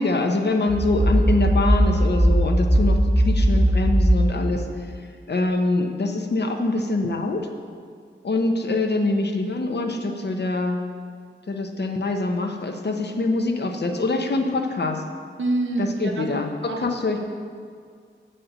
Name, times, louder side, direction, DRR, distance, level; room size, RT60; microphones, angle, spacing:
voice 1, 0.0-4.6 5.3-7.5 8.2-10.8 11.5-15.0 15.8-17.2, left 2 dB, 60° left, 4 dB, 0.8 m, -24 dB
sound 1, 0.7-4.2, equal, 20° right, 0.9 m, -19 dB
voice 2, 15.4-16.3 16.6-16.8 17.1-17.2, right 2 dB, 80° right, 2 dB, 1.0 m, -26 dB
8.1 x 4.3 x 6.8 m, 2.1 s
wide cardioid pair, 80°, 20 cm